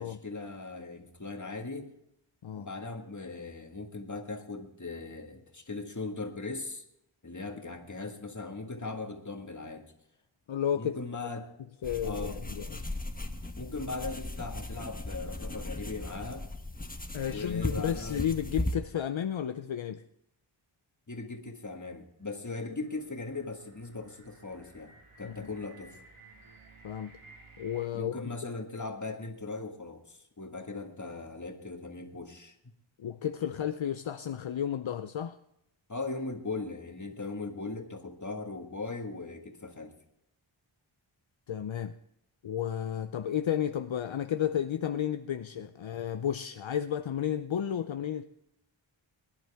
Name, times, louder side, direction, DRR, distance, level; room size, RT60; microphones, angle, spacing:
voice 1, 0.0-1.9 2.5-6.8 7.2-9.9 10.7-11.5 12.0-12.4 13.6-16.5 17.3-18.2 21.1-26.0 27.9-32.6 35.9-40.0, left 3 dB, 35° left, 1.8 m, -39 dB
voice 2, 10.5-11.0 11.8-12.8 17.1-20.0 25.2-25.5 26.8-27.1 27.6-28.2 33.0-35.4 41.5-41.9 42.4-48.2, left 9 dB, 70° left, 0.6 m, -32 dB
sound 1, 11.8-18.7, left 1 dB, 15° left, 1.2 m, -37 dB
sound 2, 22.2-27.9, right 3 dB, 80° right, 2.3 m, -56 dB
21.5 x 11.0 x 3.5 m
wide cardioid pair, 60°, 49 cm